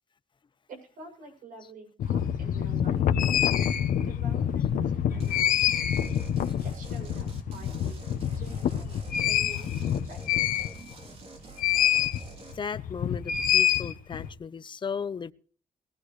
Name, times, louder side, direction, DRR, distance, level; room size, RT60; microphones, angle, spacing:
voice 1, 0.7-3.1 4.0-5.9 6.6-9.7 10.1-10.4 11.4-11.5, right 3 dB, 75° right, 7.8 m, -48 dB
sound 1, 2.0-11.0 11.6-12.2 12.5-14.3, left 10 dB, 85° left, 1.3 m, -26 dB
sound 2, 5.2-12.6, right 3 dB, 45° right, 3.5 m, -47 dB
voice 2, 12.5-15.3, left 6 dB, 35° left, 0.9 m, -35 dB
20.5 x 16.0 x 3.3 m
cardioid pair, 125°, 14 cm